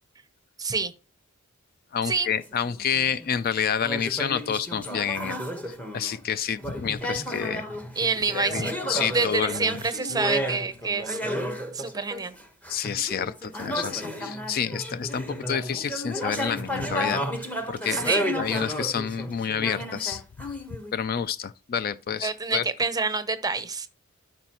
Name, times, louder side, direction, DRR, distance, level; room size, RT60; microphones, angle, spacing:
voice 1, 0.6-0.9 2.1-2.3 8.0-8.7 9.1-11.2 11.7-12.3 17.9-18.2 22.2-23.9, right 4 dB, 20° right, 0.7 m, -27 dB
voice 2, 1.9-5.4 5.7-7.7 8.3-9.8 12.7-17.2 17.7-20.2 20.9-22.6, left 7 dB, 45° left, 0.3 m, -29 dB
sound 1, 2.4-3.3 3.8-6.3 6.6-20.9, equal, 5° left, 1.0 m, -32 dB
13.0 x 5.4 x 2.9 m
head